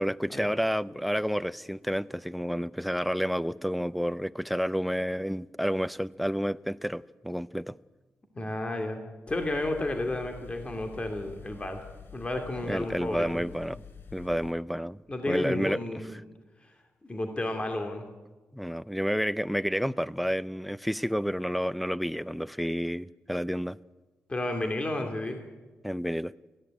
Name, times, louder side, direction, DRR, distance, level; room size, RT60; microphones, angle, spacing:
voice 1, 0.0-7.7 12.7-13.8 14.1-15.8 18.5-23.8 25.8-26.3, equal, ahead, 0.5 m, -30 dB
voice 2, 8.3-9.0 9.3-11.8 12.1-13.4 15.1-16.2 16.6-16.7 17.0-18.0 24.3-25.4, left 1 dB, 25° left, 2.5 m, -32 dB
sound 1, 9.3-14.5, left 6 dB, 60° left, 2.7 m, -48 dB
18.0 x 15.0 x 10.0 m
cardioid pair, 80°, 4 cm